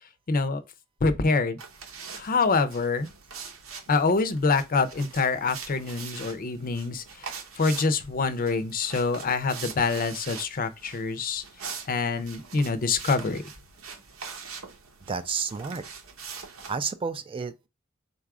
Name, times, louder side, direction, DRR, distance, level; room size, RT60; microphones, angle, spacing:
voice 1, 0.3-0.6 1.0-1.6 2.2-3.1 3.9-7.3 7.6-11.4 11.9-13.4, left 4 dB, 45° left, 0.5 m, -25 dB
sound 1, 1.6-16.7, right 6 dB, 90° right, 0.8 m, -43 dB
voice 2, 15.1-15.8 16.7-17.7, right 5 dB, 25° right, 0.3 m, -31 dB
4.0 x 2.4 x 4.6 m
head